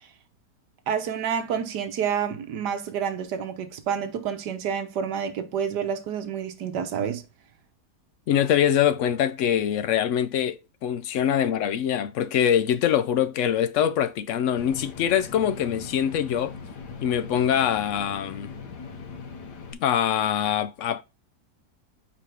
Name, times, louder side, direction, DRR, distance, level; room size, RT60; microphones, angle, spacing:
voice 1, 0.9-7.2, right 7 dB, 85° right, 1.5 m, -29 dB
voice 2, 8.3-16.5 17.0-18.5 19.8-21.0, left 9 dB, 70° left, 0.7 m, -24 dB
sound 1, 14.6-19.7, left 4 dB, 85° left, 1.7 m, -40 dB
6.9 x 4.8 x 3.4 m
omnidirectional pair, 1.7 m